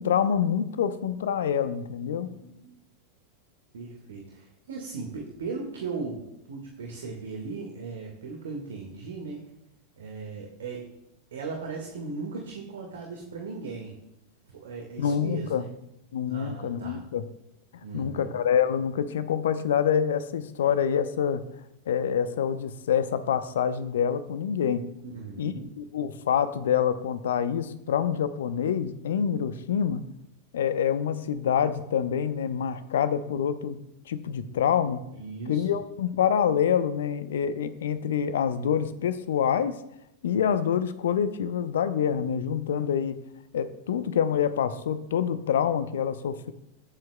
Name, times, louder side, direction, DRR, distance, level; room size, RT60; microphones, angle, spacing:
voice 1, 0.0-2.3 15.0-15.6 16.1-17.2 17.9-21.4 21.9-24.8 25.4-30.1 30.5-33.8 34.1-35.0 35.5-39.8 40.2-43.2 43.5-46.5, left 8 dB, 60° left, 13 dB, 0.7 m, -26 dB
voice 2, 3.7-9.4 10.0-10.9 11.3-14.0 14.5-15.7 16.3-17.0 17.8-18.3 25.0-25.7 35.1-35.8, right 4 dB, 65° right, 1 dB, 1.6 m, -37 dB
22.0 x 7.6 x 2.2 m, 0.83 s
figure-of-eight pair, 90°, 0 cm